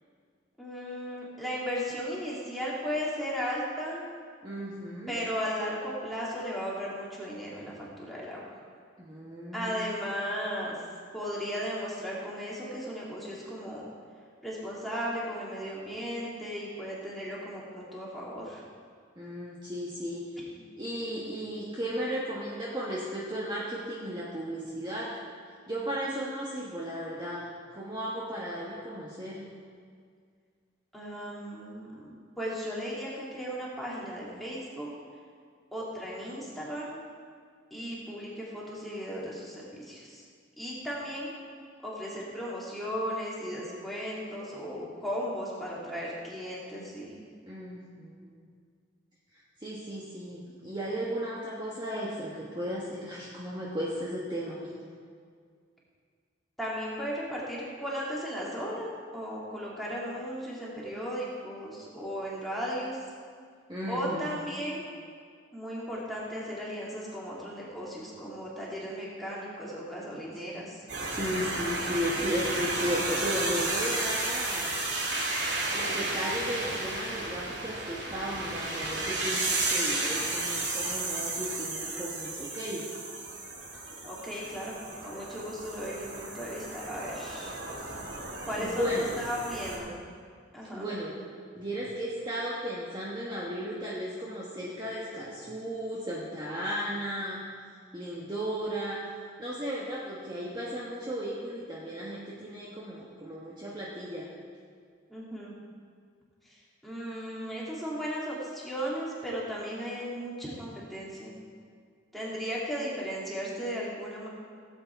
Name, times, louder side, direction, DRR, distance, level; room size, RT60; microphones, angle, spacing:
voice 1, 0.6-4.1 5.1-8.6 9.5-10.8 11.1-13.9 14.4-18.6 30.9-34.9 35.7-37.0 37.7-40.2 40.6-41.3 41.8-47.2 56.6-63.0 63.9-64.9 65.5-70.8 84.0-84.7 85.0-87.5 88.5-89.9 90.5-90.9 105.1-105.5 106.4-111.3 112.1-114.3, equal, ahead, -7 dB, 2.6 m, -36 dB
voice 2, 4.4-5.1 9.0-9.9 19.2-20.3 20.8-25.2 25.7-29.5 47.4-48.3 49.6-54.8 63.7-64.3 71.1-74.8 75.7-82.9 88.6-89.1 90.7-91.2 91.5-97.4 97.9-99.0 99.4-104.3, equal, 25° right, -6 dB, 1.3 m, -35 dB
sound 1, 70.9-89.8, right 2 dB, 65° right, 2.4 m, -33 dB
16.5 x 8.4 x 4.6 m, 2.1 s
head